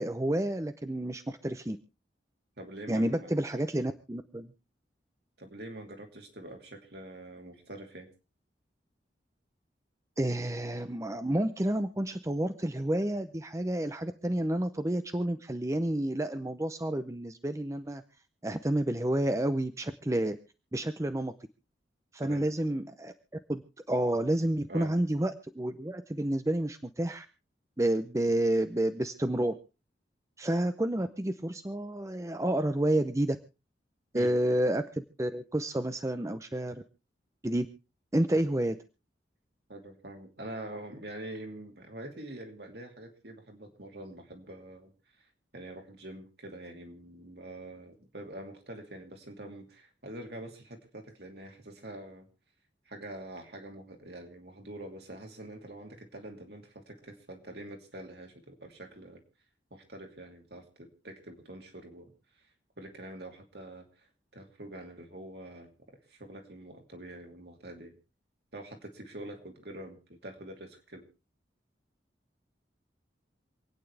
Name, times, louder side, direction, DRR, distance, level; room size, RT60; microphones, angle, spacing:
voice 1, 0.0-1.8 2.9-4.5 10.2-18.0 18.4-20.4 20.7-21.3 22.1-23.1 23.5-23.6 23.9-27.3 27.8-29.6 30.4-33.4 34.1-36.8 37.4-37.7 38.1-38.7, right 1 dB, 15° right, 9 dB, 0.6 m, -30 dB
voice 2, 2.6-3.3 5.4-8.1 22.2-22.5 24.7-24.9 34.1-34.3 38.3-38.5 39.7-45.3 45.5-52.3 52.8-59.2 59.7-62.1 62.4-62.5 62.8-64.1 64.3-65.8 66.1-68.0 68.5-71.1, right 1 dB, 65° right, 3 dB, 2.8 m, -45 dB
27.5 x 9.2 x 3.3 m, 0.31 s
head